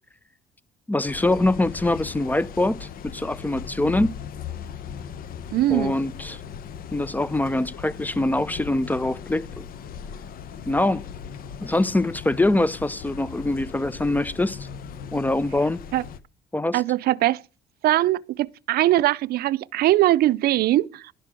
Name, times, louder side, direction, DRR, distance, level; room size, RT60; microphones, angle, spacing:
voice 1, 0.9-4.1 5.7-6.4 6.9-9.6 10.7-11.0 11.6-14.7 15.1-15.8 16.5-16.8, left 2 dB, 10° left, 0.5 m, -24 dB
sound 1, 1.1-16.2, left 7 dB, 60° left, 0.9 m, -38 dB
voice 2, 5.5-5.9 15.9-16.0 16.7-17.4 17.8-21.1, right 15 dB, 65° right, 0.5 m, -21 dB
11.0 x 6.8 x 6.0 m
cardioid pair, 110°, 17 cm